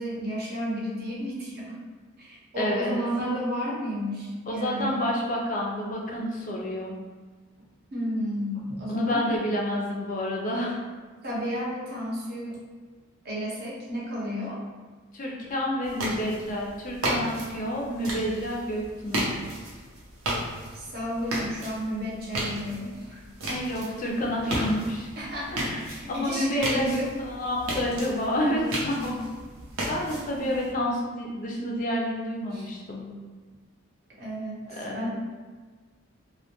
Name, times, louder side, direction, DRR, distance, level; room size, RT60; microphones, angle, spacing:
voice 1, 0.0-1.8 2.2-5.0 7.9-9.2 11.2-12.6 13.2-14.6 20.7-23.5 25.2-27.1 28.5-28.7 28.9-29.2 32.5-32.7 34.2-35.1, equal, 45° right, -5 dB, 0.6 m, -32 dB
voice 2, 2.6-3.0 4.5-7.0 8.9-10.8 15.1-19.3 23.5-25.1 25.6-29.2 29.9-33.1 34.7-35.1, equal, 40° left, -2 dB, 0.3 m, -29 dB
sound 1, 15.8-30.7, right 1 dB, 90° right, 0.6 m, -35 dB
2.1 x 2.1 x 2.8 m, 1.4 s
head